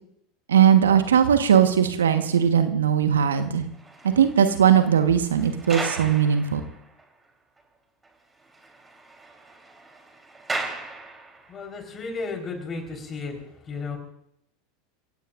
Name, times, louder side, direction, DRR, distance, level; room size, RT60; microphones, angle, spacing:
voice 1, 0.5-3.7 4.0-6.6, right 8 dB, 80° right, 8 dB, 1.3 m, -19 dB
sound 1, 3.5-7.3 7.6-7.7 8.0-8.1 8.4-11.7 12.4-12.5, right 2 dB, 15° right, 3.6 m, -37 dB
voice 2, 11.5-13.3 13.7-14.0, left 4 dB, 30° left, 3 dB, 4.3 m, -33 dB
27.0 x 16.0 x 2.6 m, 0.73 s
hypercardioid pair, 85°, 0 cm